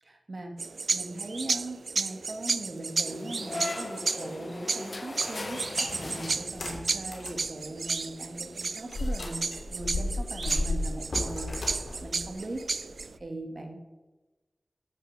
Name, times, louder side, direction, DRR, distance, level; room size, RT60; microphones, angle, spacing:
voice 1, 0.0-0.6 0.9-12.7 13.2-13.8, right 2 dB, 60° right, 4 dB, 1.8 m, -40 dB
sound 1, 0.6-13.2, right 4 dB, 85° right, 0.3 m, -33 dB
sound 2, 3.0-6.9, left 2 dB, 50° left, 0.8 m, -38 dB
sound 3, 6.4-7.4 7.9-8.0 8.9-13.2, left 2 dB, 75° left, 2.7 m, -33 dB
13.5 x 6.9 x 6.4 m, 1.2 s
wide cardioid pair, 75°, 0 cm